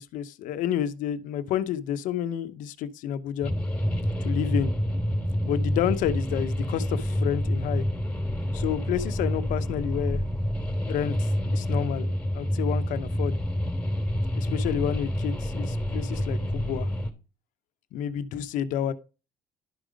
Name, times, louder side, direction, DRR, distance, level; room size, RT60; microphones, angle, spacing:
voice 1, 0.0-3.5 4.2-4.7 5.4-7.9 8.5-10.2 10.9-12.1 12.3-13.4 14.3-16.9 17.9-18.9, left 10 dB, 75° left, 0.9 m, -30 dB
sound 1, 3.4-17.1, equal, 10° left, 2.4 m, -28 dB
11.5 x 5.0 x 5.1 m
supercardioid pair, 70°, 14 cm